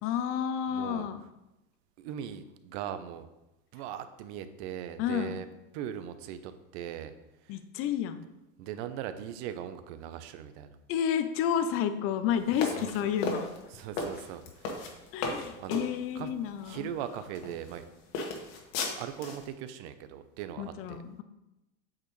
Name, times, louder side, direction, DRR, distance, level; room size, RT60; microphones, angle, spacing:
voice 1, 0.0-1.2 5.0-5.4 7.5-8.2 10.9-13.5 15.1-16.9 20.6-21.2, left 9 dB, 35° left, 10 dB, 0.5 m, -30 dB
voice 2, 0.7-1.1 2.0-3.3 3.7-5.5 5.7-7.1 8.6-10.8 12.5-13.1 13.7-14.9 15.6-15.8 16.1-16.3 16.6-17.8 19.0-21.0, right 10 dB, 55° right, 11 dB, 0.8 m, -39 dB
sound 1, 12.5-15.9 16.6-16.8 17.3-17.8 18.1-19.4, left 3 dB, 55° left, 1.7 m, -35 dB
8.6 x 6.4 x 3.1 m, 0.95 s
supercardioid pair, 130°, 42 cm